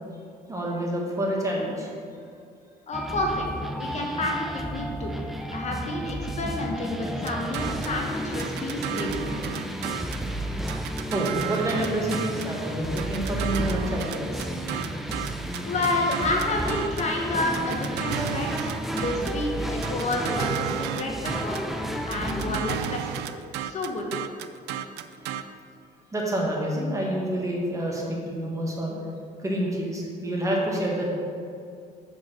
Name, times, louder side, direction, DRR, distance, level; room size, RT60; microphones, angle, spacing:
voice 1, 0.5-1.9 11.1-14.5 26.1-29.0 29.4-31.1, right 1 dB, 20° right, -2 dB, 1.5 m, -28 dB
voice 2, 2.9-3.5 3.7-5.1 5.5-9.3 15.6-21.6 22.0-23.2 23.6-24.1, left 2 dB, 40° left, 0 dB, 1.1 m, -29 dB
sound 1, 2.9-22.6, equal, ahead, 0.5 m, -32 dB
sound 2, 7.3-8.0 8.4-10.3 10.7-12.6 13.0-17.1 17.5-19.4 19.8-21.7 22.1-25.4, right 11 dB, 80° right, 0.4 m, -33 dB
5.9 x 4.6 x 6.1 m, 2.4 s
cardioid pair, 110°, 17 cm